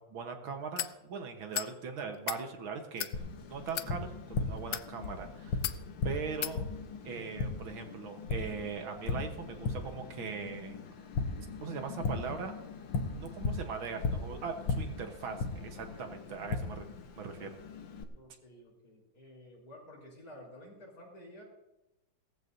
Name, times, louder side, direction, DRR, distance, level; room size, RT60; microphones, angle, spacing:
voice 1, 0.1-3.1 3.4-5.6 6.0-6.7 7.0-10.8 11.6-12.5 13.1-16.9 17.2-17.6, right 5 dB, 75° right, 5 dB, 2.0 m, -40 dB
sound 1, 0.8-0.9 1.5-1.7 2.1-2.4 3.0-3.1 3.7-3.9 4.6-4.9 5.6-5.8 6.4-6.6, left 12 dB, 80° left, 0.8 m, -35 dB
Tap, 3.1-18.0, left 4 dB, 65° left, 1.8 m, -38 dB
voice 2, 15.7-16.1 18.1-21.4, left 1 dB, 45° left, -3 dB, 5.1 m, -52 dB
18.0 x 14.5 x 2.7 m, 0.93 s
omnidirectional pair, 2.3 m